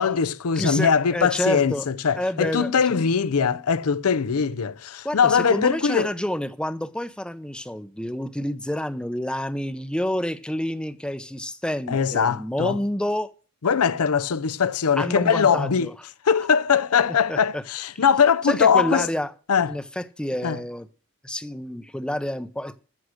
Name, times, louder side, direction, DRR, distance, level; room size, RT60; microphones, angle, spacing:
voice 1, 0.0-6.1 11.9-12.8 13.6-15.9 16.2-19.1 19.5-19.8 20.4-20.6, left 6 dB, 80° left, 0.6 m, -21 dB
voice 2, 0.6-1.8 2.2-3.0 5.0-13.3 15.0-15.9 17.3-17.6 17.9-18.0 18.4-19.3 19.7-20.9 21.2-22.8, left 1 dB, 5° left, 0.6 m, -28 dB
14.5 x 6.4 x 6.3 m
head